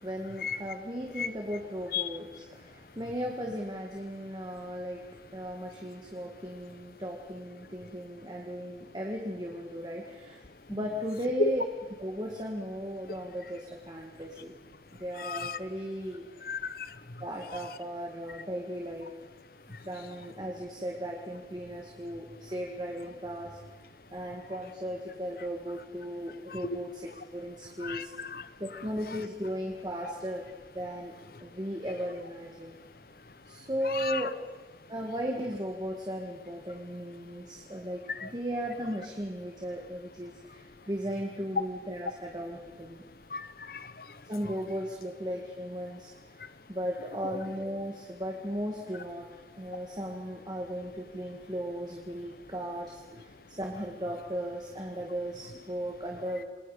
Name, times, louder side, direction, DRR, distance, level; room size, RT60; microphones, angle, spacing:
voice 1, 0.0-5.0 5.3-10.4 10.7-11.7 12.0-14.5 15.0-16.5 17.2-19.1 19.8-23.6 24.1-28.1 28.6-30.5 30.7-31.1 31.4-32.8 33.5-34.3 34.9-43.0 44.3-46.1 46.7-49.3 49.6-56.4, equal, 25° right, 0 dB, 2.1 m, -36 dB
voice 2, 15.2-15.6 16.4-16.9 26.5-26.8 27.8-28.4 33.9-34.2 38.2-38.3 43.3-43.9 47.3-47.4, left 4 dB, 55° left, 14 dB, 1.0 m, -33 dB
28.0 x 21.0 x 5.1 m, 1.3 s
head